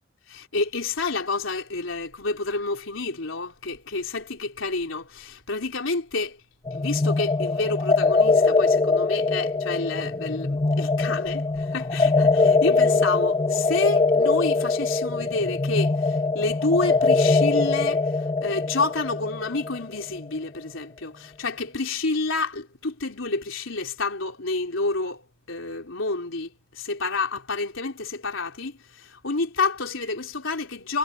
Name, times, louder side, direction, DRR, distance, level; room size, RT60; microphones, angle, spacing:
voice 1, 0.3-6.4 6.7-25.2 25.5-31.0, left 3 dB, 80° left, 3.6 m, -29 dB
sound 1, 6.7-20.2, left 3 dB, 25° left, 0.8 m, -22 dB
head